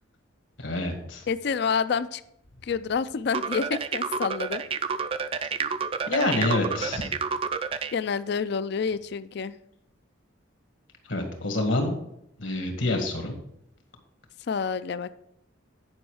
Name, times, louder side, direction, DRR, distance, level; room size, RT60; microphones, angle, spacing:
voice 1, 0.6-1.3 6.1-7.1 11.1-12.0 12.4-13.4, left 2 dB, 70° left, 4 dB, 1.9 m, -27 dB
voice 2, 1.3-2.2 2.6-4.6 7.9-9.6 14.5-15.1, left 5 dB, 55° left, 15 dB, 0.4 m, -28 dB
sound 1, 3.3-7.9, right 5 dB, 30° right, 0.3 m, -29 dB
9.8 x 5.4 x 4.9 m, 0.76 s
head